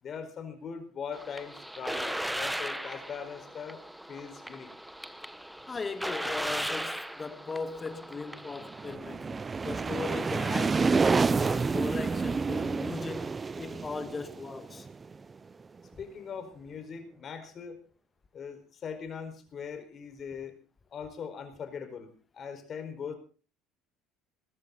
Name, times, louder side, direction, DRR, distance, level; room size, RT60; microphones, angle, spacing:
voice 1, 0.0-4.7 16.0-17.8 18.3-20.5 20.9-23.1, left 6 dB, 45° left, 4.7 m, -41 dB
sound 1, 1.1-9.0, right 1 dB, 5° right, 1.1 m, -37 dB
voice 2, 5.7-9.3 9.6-14.9, left 4 dB, 25° left, 1.7 m, -38 dB
sound 2, 8.6-15.3, right 4 dB, 25° right, 0.7 m, -29 dB
20.0 x 13.5 x 4.0 m
supercardioid pair, 95°, 0 cm